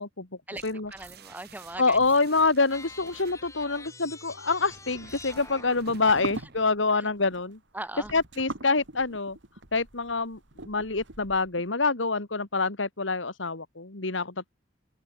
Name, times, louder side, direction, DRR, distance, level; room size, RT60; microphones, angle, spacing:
sound 1, 0.6-3.5 4.6-6.8, right 5 dB, 60° right, 5.2 m, -51 dB
voice 1, 0.9-2.0 6.9-7.1 7.7-8.1, right 1 dB, 10° right, 6.4 m, -39 dB
voice 2, 1.8-7.6 8.1-9.4 9.7-10.4 10.6-14.5, left 3 dB, 85° left, 2.2 m, -26 dB
sound 2, 2.7-6.0, left 3 dB, 15° left, 4.2 m, -46 dB
sound 3, 4.6-11.6, right 2 dB, 75° right, 3.0 m, -42 dB
head